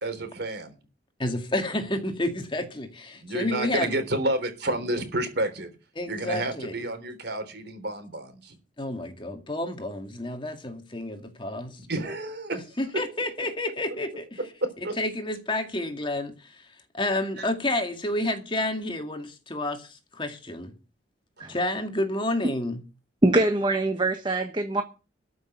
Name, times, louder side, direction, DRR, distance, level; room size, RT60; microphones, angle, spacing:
voice 1, 0.0-0.8 3.1-5.7 6.1-8.6 11.9-12.6 14.6-14.9 17.4-17.5, right 1 dB, 55° right, 3.6 m, -30 dB
voice 2, 1.2-3.9 6.0-6.8 8.8-11.8 12.5-14.4 15.0-16.7 16.9-20.7 21.5-22.8, left 1 dB, 25° left, 2.1 m, -30 dB
voice 3, 23.2-24.8, right 2 dB, 25° right, 1.3 m, -23 dB
13.5 x 6.4 x 9.3 m
head